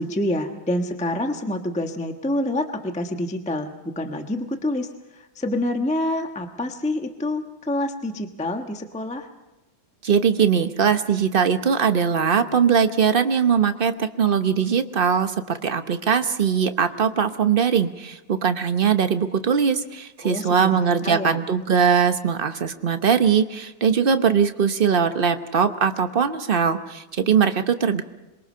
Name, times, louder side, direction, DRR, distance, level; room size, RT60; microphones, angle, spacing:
voice 1, 0.0-9.3 20.2-21.4, left 1 dB, 5° left, 5 dB, 0.9 m, -27 dB
voice 2, 10.0-28.0, right 7 dB, 40° right, 8 dB, 0.8 m, -21 dB
27.0 x 23.0 x 5.6 m, 1.0 s
omnidirectional pair, 2.0 m